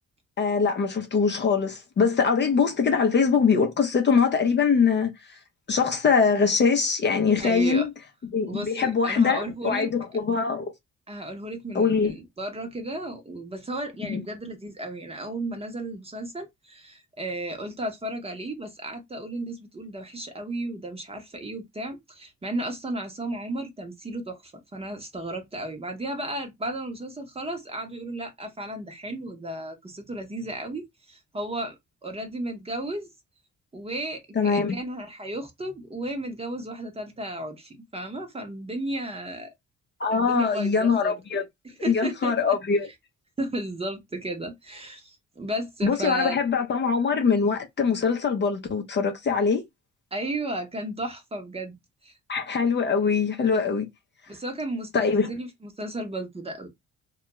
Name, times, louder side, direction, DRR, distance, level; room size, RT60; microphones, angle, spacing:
voice 1, 0.4-5.1 5.7-7.9 8.3-10.7 11.7-12.1 14.0-14.2 34.4-34.8 40.0-41.4 41.8-42.9 45.8-49.6 52.3-53.9 54.9-55.3, left 5 dB, 35° left, 0.6 m, -23 dB
voice 2, 7.4-7.9 8.5-9.9 11.1-31.8 32.0-33.1 33.7-39.5 40.1-41.1 41.6-42.6 42.8-42.9 43.4-46.4 50.1-51.8 52.0-52.1 54.3-56.7, right 1 dB, 20° right, 0.8 m, -34 dB
2.3 x 2.2 x 2.9 m
cardioid pair, 90°, 30 cm